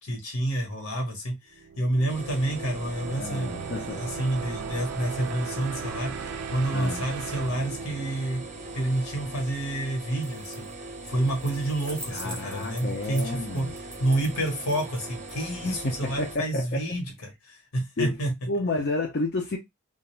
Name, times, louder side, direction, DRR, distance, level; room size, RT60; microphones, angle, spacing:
voice 1, 0.0-1.3 1.8-6.1 6.5-8.4 8.7-10.7 11.1-13.7 14.0-18.3, right 1 dB, 75° left, 1.1 m, -29 dB
sound 1, 1.5-9.3, right 7 dB, 90° right, 0.4 m, -38 dB
sound 2, 2.1-16.4, right 2 dB, 35° right, 0.6 m, -41 dB
voice 2, 3.2-4.0 6.7-7.1 12.1-13.7 15.6-16.9 18.0-18.2 18.5-19.6, left 2 dB, 45° left, 0.5 m, -31 dB
sound 3, 10.1-10.7 11.1-15.3, right 1 dB, 5° left, 0.7 m, -43 dB
2.4 x 2.2 x 3.0 m
head